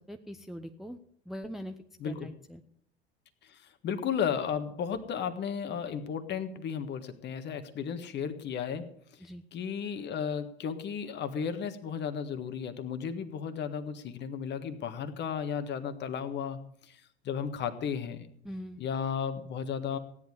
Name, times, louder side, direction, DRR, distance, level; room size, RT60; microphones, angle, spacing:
voice 1, 0.1-1.0 1.3-1.7 2.0-2.6 9.2-9.4 18.4-18.8, equal, ahead, 6 dB, 0.7 m, -42 dB
voice 2, 2.0-2.3 3.4-8.8 9.5-18.3 18.8-20.0, left 7 dB, 35° left, 10 dB, 1.6 m, -34 dB
16.5 x 10.5 x 4.9 m, 0.67 s
figure-of-eight pair, 75°, 31 cm